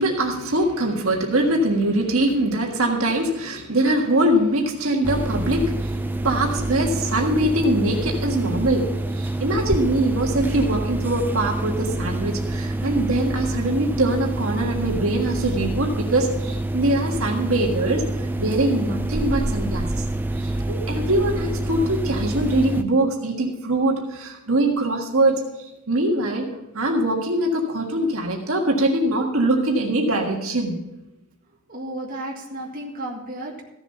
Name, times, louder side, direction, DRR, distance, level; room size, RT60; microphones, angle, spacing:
voice 1, 0.0-18.0 18.4-20.0 20.4-26.5 26.7-30.8, right 1 dB, 70° right, 1 dB, 1.7 m, -23 dB
sound 1, 5.0-22.8, right 2 dB, 10° right, 0.4 m, -27 dB
voice 2, 31.7-33.6, right 1 dB, 40° right, -1 dB, 1.9 m, -33 dB
15.0 x 7.3 x 5.7 m, 0.93 s
head